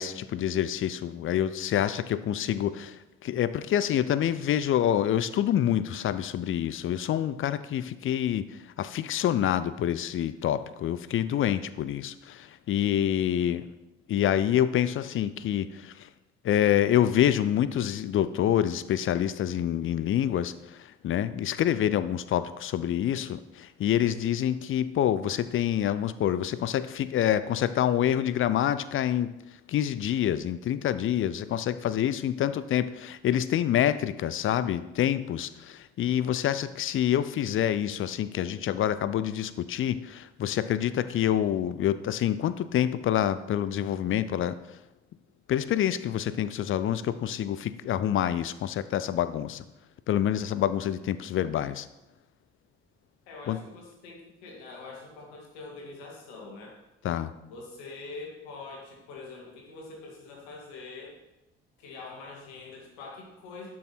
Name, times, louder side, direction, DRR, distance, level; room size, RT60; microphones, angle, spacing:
voice 1, 0.0-8.5 8.8-13.7 14.1-16.1 16.4-29.3 29.7-44.6 45.5-49.6 50.1-51.9 53.5-53.6 57.0-57.3, left 10 dB, 40° left, 15 dB, 0.6 m, -27 dB
voice 2, 53.3-56.8 57.5-61.2 61.8-63.7, left 3 dB, 70° left, 0 dB, 2.3 m, -44 dB
12.0 x 6.2 x 4.3 m, 0.96 s
figure-of-eight pair, 50°, 32 cm